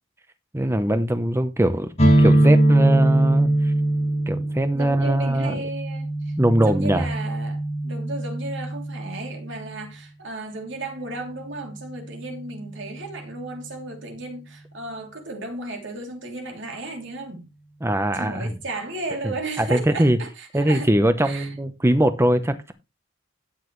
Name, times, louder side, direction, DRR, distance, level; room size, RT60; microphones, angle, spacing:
voice 1, 0.5-1.9 2.2-3.7 4.3-5.6 6.4-7.1 17.8-18.5 19.2-20.2 20.5-22.7, right 1 dB, 15° right, 0.8 m, -21 dB
sound 1, 2.0-9.6, right 1 dB, 35° left, 4.7 m, -21 dB
voice 2, 4.6-17.5 18.1-20.9 21.2-21.5, right 2 dB, 65° right, 3.0 m, -34 dB
12.0 x 9.0 x 3.1 m
head